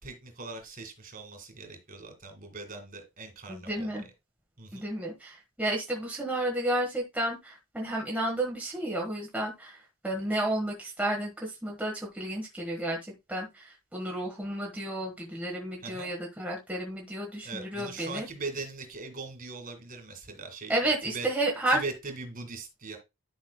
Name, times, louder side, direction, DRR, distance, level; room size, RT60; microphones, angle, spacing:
voice 1, 0.0-4.1 4.6-4.9 15.8-16.1 17.4-21.3 21.7-23.0, right 3 dB, 40° right, 5 dB, 2.1 m, -40 dB
voice 2, 3.5-4.0 4.7-9.8 10.0-18.3 20.7-21.8, right 1 dB, 5° right, -2 dB, 1.3 m, -31 dB
11.0 x 5.6 x 2.2 m, 0.23 s
head